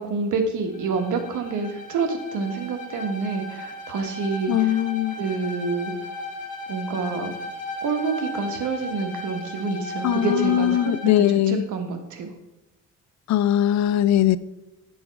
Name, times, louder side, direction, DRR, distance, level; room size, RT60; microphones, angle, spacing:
voice 1, 0.0-4.7 5.2-5.9 6.7-7.3 7.8-12.3, right 4 dB, 80° right, 1.4 m, -27 dB
Bowed string instrument, 0.7-11.2, left 1 dB, 25° left, 1.7 m, -36 dB
voice 2, 4.5-5.2 10.0-11.6 13.3-14.4, left 12 dB, 65° left, 0.5 m, -20 dB
9.8 x 5.5 x 4.6 m
cardioid pair, 90°, 30 cm